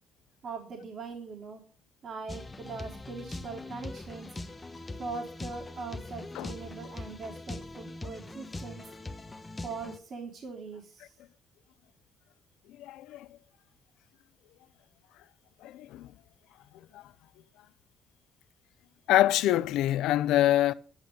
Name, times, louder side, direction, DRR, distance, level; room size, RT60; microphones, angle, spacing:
voice 1, 0.4-1.6 2.0-4.3 5.0-8.8 9.6-11.1, right 4 dB, 50° right, 3.5 m, -41 dB
sound 1, 2.3-10.0, left 2 dB, 15° left, 1.2 m, -42 dB
voice 2, 12.8-13.3 15.6-16.1 16.9-17.0 19.1-20.7, left 13 dB, 85° left, 0.6 m, -25 dB
11.0 x 10.5 x 5.3 m
cardioid pair, 115°, 0 cm